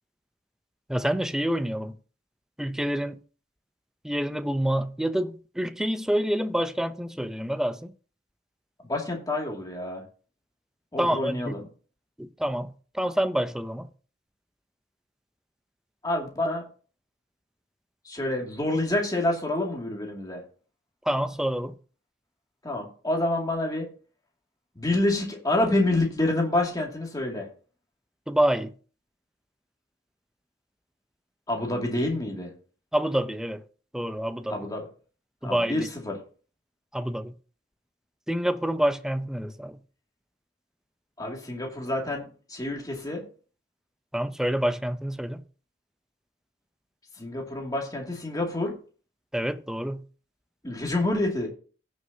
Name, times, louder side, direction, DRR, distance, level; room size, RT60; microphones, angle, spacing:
voice 1, 0.9-1.9 2.6-3.2 4.0-7.9 11.0-11.5 12.2-13.9 21.1-21.7 28.3-28.7 32.9-33.6 33.9-34.6 35.4-35.9 36.9-37.3 38.3-39.8 44.1-45.4 49.3-50.0, right 1 dB, 5° right, 0.5 m, -27 dB
voice 2, 8.8-10.0 10.9-11.6 16.0-16.6 18.0-20.4 22.6-23.9 24.8-27.5 31.5-32.5 34.5-34.8 35.4-36.2 41.2-43.2 47.2-48.7 50.6-51.5, left 1 dB, 20° left, 2.3 m, -28 dB
16.0 x 6.3 x 2.8 m
head